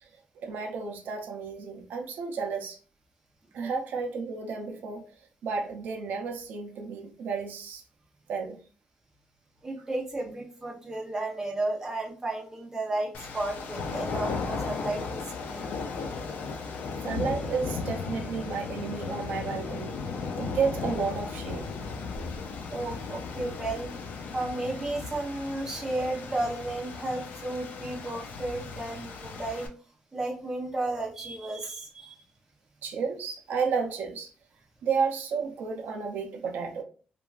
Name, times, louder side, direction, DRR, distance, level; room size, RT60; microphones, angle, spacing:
voice 1, 0.4-2.8 3.5-5.1 5.4-7.8 8.3-8.6 17.0-20.0 20.4-21.7 32.8-34.3 34.8-36.8, right 5 dB, 85° right, 0.5 m, -32 dB
voice 2, 9.6-15.7 22.7-23.9 24.3-29.7 30.1-32.2, right 2 dB, 15° right, 0.7 m, -33 dB
sound 1, 13.1-29.7, left 4 dB, 70° left, 0.4 m, -36 dB
3.1 x 2.3 x 2.4 m
wide cardioid pair, 175°, 3 cm